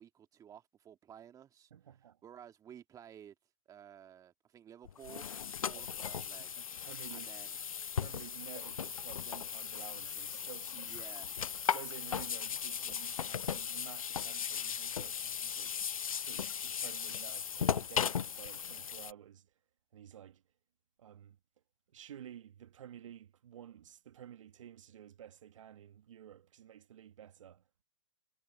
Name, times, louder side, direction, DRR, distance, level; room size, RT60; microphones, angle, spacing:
voice 1, 0.0-1.7 2.2-3.3 3.7-6.5 7.1-7.5 10.8-11.3, right 9 dB, 20° right, 2.3 m, -54 dB
voice 2, 1.7-2.2 5.7-5.8 6.6-7.3 8.0-11.0 11.7-15.8 16.2-19.5 19.9-20.4 21.0-21.4 21.9-27.8, right 10 dB, 65° right, 1.8 m, -52 dB
sound 1, 4.8-19.1, left 8 dB, 90° left, 0.4 m, -37 dB
hypercardioid pair, 120°, 17 cm